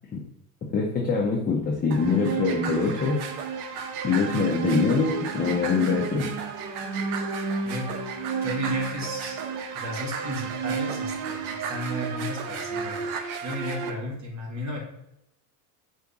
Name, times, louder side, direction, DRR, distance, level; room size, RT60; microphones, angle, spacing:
voice 1, 0.7-3.2 4.0-6.3, left 4 dB, 20° left, -1 dB, 0.6 m, -24 dB
sound 1, 1.9-13.9, right 6 dB, 80° right, 0.7 m, -31 dB
voice 2, 8.4-9.4 9.7-14.8, equal, 40° right, 0 dB, 1.4 m, -34 dB
4.8 x 2.7 x 3.5 m, 0.81 s
supercardioid pair, 120°, 46 cm